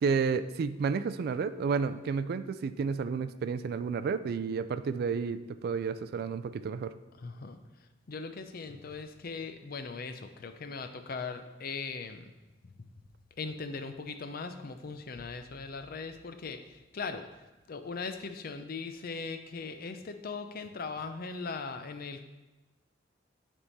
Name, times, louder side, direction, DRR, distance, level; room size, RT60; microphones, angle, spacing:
voice 1, 0.0-6.9, right 5 dB, 55° right, 13 dB, 0.3 m, -31 dB
voice 2, 7.2-7.6 8.1-12.2 13.4-16.6 16.9-17.2 17.7-22.2, left 4 dB, 50° left, 9 dB, 0.5 m, -39 dB
9.7 x 3.6 x 4.1 m, 1.1 s
head